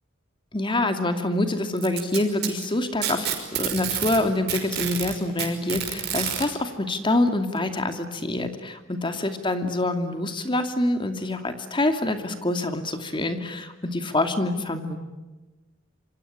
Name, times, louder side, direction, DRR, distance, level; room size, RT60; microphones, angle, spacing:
voice 1, 0.5-3.3 3.5-15.0, left 2 dB, 25° left, 7 dB, 2.5 m, -26 dB
Packing tape duct tape, 1.8-4.2 4.5-6.5 7.6-7.7 8.2-8.3 9.2-9.3, right 10 dB, 55° right, 5.6 m, -28 dB
27.0 x 25.0 x 8.7 m, 1.1 s
head